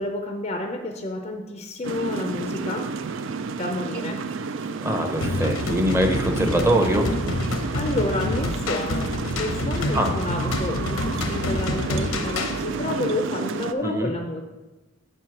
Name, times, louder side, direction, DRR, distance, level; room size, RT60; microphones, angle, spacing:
voice 1, 0.0-2.9 3.6-4.2 7.7-14.4, left 2 dB, 30° left, 3 dB, 0.5 m, -30 dB
sound 1, 1.8-13.7, right 5 dB, 65° right, 0.4 m, -31 dB
voice 2, 4.7-7.1 9.9-10.1 13.8-14.1, right 1 dB, 10° right, 3 dB, 0.7 m, -23 dB
sound 2, 5.2-12.6, left 2 dB, 80° left, 0.8 m, -28 dB
7.9 x 4.6 x 5.9 m, 1.2 s
head